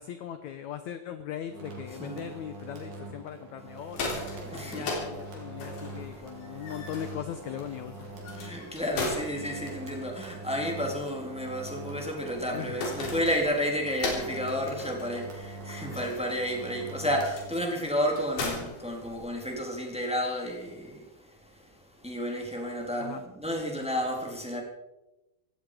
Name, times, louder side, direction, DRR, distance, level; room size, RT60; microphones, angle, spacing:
voice 1, 0.0-4.3 4.7-8.1 12.5-12.8 17.7-17.9 18.7-18.8 23.0-23.2, left 10 dB, 70° left, 9 dB, 1.8 m, -39 dB
sound 1, 1.4-17.9, right 2 dB, 70° right, 4.6 m, -43 dB
sound 2, 3.7-19.6, left 3 dB, 90° left, 5.3 m, -39 dB
voice 2, 4.4-4.9 8.2-21.0 22.0-24.6, equal, ahead, 0 dB, 3.0 m, -31 dB
17.0 x 16.0 x 5.1 m, 0.98 s
omnidirectional pair, 4.3 m